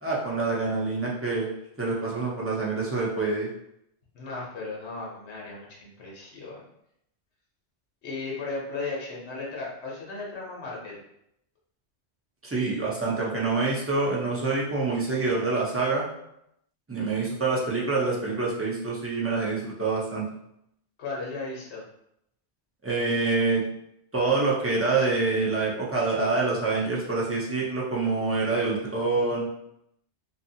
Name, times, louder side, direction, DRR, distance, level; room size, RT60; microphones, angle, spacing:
voice 1, 0.0-1.5 1.8-3.5 12.4-16.1 16.9-20.2 22.8-23.6 24.1-29.5, right 3 dB, 20° right, -5 dB, 0.4 m, -26 dB
voice 2, 4.1-6.6 8.0-11.0 21.0-21.8, left 3 dB, 75° left, -4 dB, 1.0 m, -36 dB
2.7 x 2.5 x 2.7 m, 0.77 s
omnidirectional pair, 1.2 m